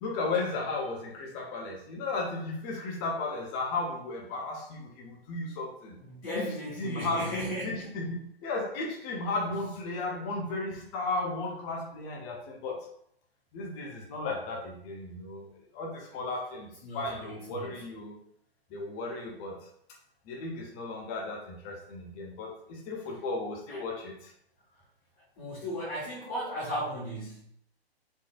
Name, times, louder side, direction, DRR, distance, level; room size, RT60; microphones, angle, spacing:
voice 1, 0.0-6.0 6.3-6.5 6.8-7.3 7.6-12.9 13.5-15.5 15.7-16.7 16.9-18.2 18.7-19.6 20.3-24.3, left 3 dB, 20° left, 0 dB, 0.6 m, -35 dB
voice 2, 6.0-7.9 16.8-17.8 23.7-23.8 25.4-27.4, equal, 35° left, -9 dB, 1.4 m, -36 dB
4.3 x 3.0 x 2.4 m, 0.68 s
figure-of-eight pair, 120°, 31 cm